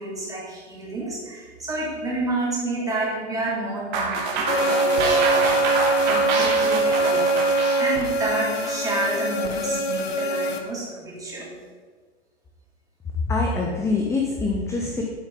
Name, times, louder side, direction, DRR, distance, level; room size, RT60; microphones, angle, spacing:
voice 1, 0.0-5.5 6.0-11.5, right 2 dB, 10° right, -5 dB, 3.0 m, -30 dB
sound 1, 3.9-9.1, right 3 dB, 40° right, 1.7 m, -26 dB
sound 2, 4.5-10.6, right 2 dB, 65° left, 1.1 m, -23 dB
voice 2, 13.2-15.0, left 3 dB, 10° left, 0 dB, 0.8 m, -24 dB
9.7 x 8.0 x 3.9 m, 1.5 s
figure-of-eight pair, 100°, 34 cm